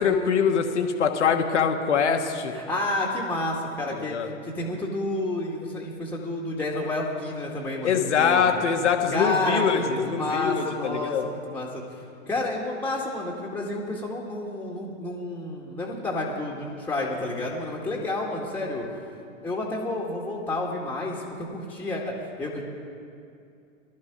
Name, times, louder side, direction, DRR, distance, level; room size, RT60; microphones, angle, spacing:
voice 1, 0.0-2.5 4.1-4.3 7.8-11.2, left 6 dB, 60° left, 5 dB, 1.5 m, -23 dB
voice 2, 2.5-4.2 4.4-8.5 9.1-11.8 12.3-18.9 19.4-22.6, left 2 dB, 5° left, -3 dB, 2.0 m, -30 dB
16.5 x 12.5 x 6.2 m, 2.5 s
figure-of-eight pair, 100°, 39 cm